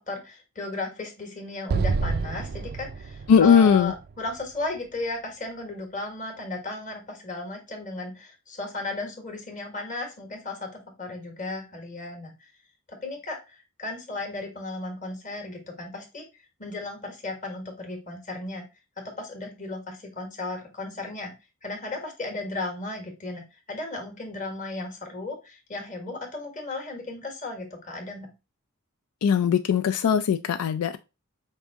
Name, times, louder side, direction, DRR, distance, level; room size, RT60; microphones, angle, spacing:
voice 1, 0.1-12.5 12.9-18.6 19.0-21.3 21.6-28.3, left 2 dB, 35° left, 1.3 m, -35 dB
Explosion, 1.7-5.0, right 4 dB, 45° right, 0.3 m, -29 dB
voice 2, 3.3-3.9 29.2-31.0, left 7 dB, 85° left, 0.3 m, -19 dB
5.2 x 2.7 x 3.4 m
head